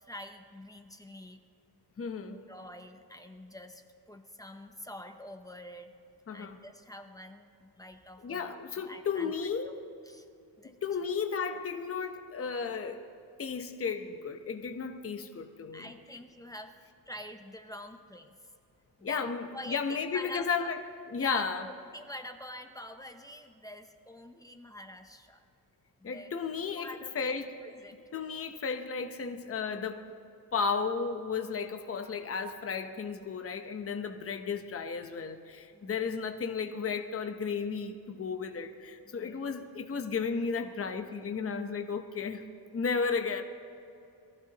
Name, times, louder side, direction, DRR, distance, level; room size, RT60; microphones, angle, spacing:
voice 1, 0.0-1.4 2.5-6.0 6.3-9.3 10.1-10.3 10.6-10.7 15.7-16.7 17.1-18.3 19.0-20.7 21.1-25.4 26.0-26.3 26.7-27.4 27.6-28.0 35.7-36.1 39.1-39.4, equal, 10° left, 6 dB, 0.8 m, -46 dB
voice 2, 2.0-2.4 6.3-6.6 8.2-9.8 10.6-13.0 13.4-15.9 19.0-20.8 21.1-21.6 26.0-27.5 28.1-30.1 30.5-42.4 42.7-43.4, left 5 dB, 35° left, 6 dB, 0.9 m, -34 dB
23.0 x 15.0 x 3.0 m, 2.6 s
wide cardioid pair, 145°, 39 cm